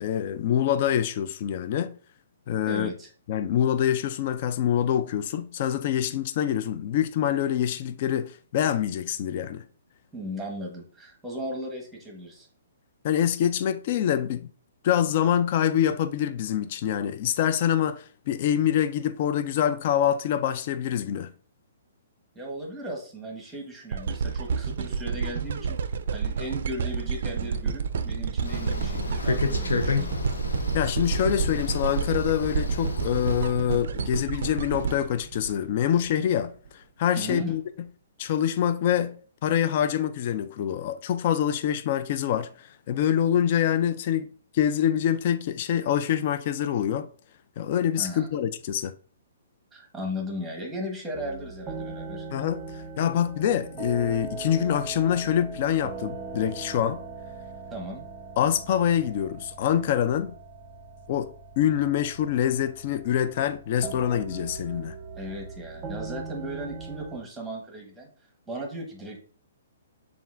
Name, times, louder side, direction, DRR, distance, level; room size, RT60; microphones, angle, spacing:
voice 1, 0.0-2.0 2.5-2.9 3.3-9.6 13.0-14.5 14.8-21.3 30.7-37.6 38.2-47.1 47.6-48.9 52.3-57.0 58.4-60.4 61.1-65.0, left 10 dB, 45° left, 0.3 m, -25 dB
voice 2, 2.6-3.1 10.1-12.5 22.3-25.8 26.1-30.2 37.2-37.5 48.0-48.3 49.7-52.3 57.7-58.0 65.1-68.1 68.5-69.2, equal, 5° right, 1.1 m, -36 dB
sound 1, 23.9-36.1 36.7-36.8, right 6 dB, 65° right, 0.3 m, -30 dB
sound 2, 28.4-33.5, left 3 dB, 85° left, 0.6 m, -30 dB
sound 3, 51.1-67.2, right 4 dB, 20° right, 0.8 m, -40 dB
7.1 x 2.4 x 2.5 m
hypercardioid pair, 140°, 0 cm